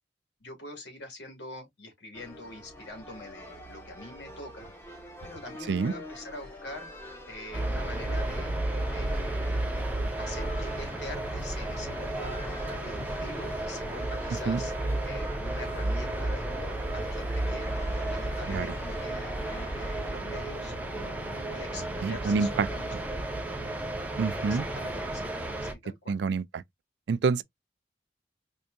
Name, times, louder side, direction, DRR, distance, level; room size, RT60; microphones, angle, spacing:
voice 1, 0.4-4.7 5.2-6.9 7.3-8.6 8.9-9.7 10.2-12.5 12.8-14.7 15.0-17.7 18.1-22.9 24.5-25.3 25.6-26.2, left 2 dB, 80° left, 2.2 m, -44 dB
sound 1, 2.1-20.1, equal, 15° left, 1.0 m, -44 dB
sound 2, 7.5-25.7, right 1 dB, 10° right, 0.7 m, -33 dB
voice 2, 22.0-22.7 24.2-24.6 26.1-26.6 27.1-27.4, right 5 dB, 80° right, 0.3 m, -27 dB
4.5 x 2.7 x 2.5 m
head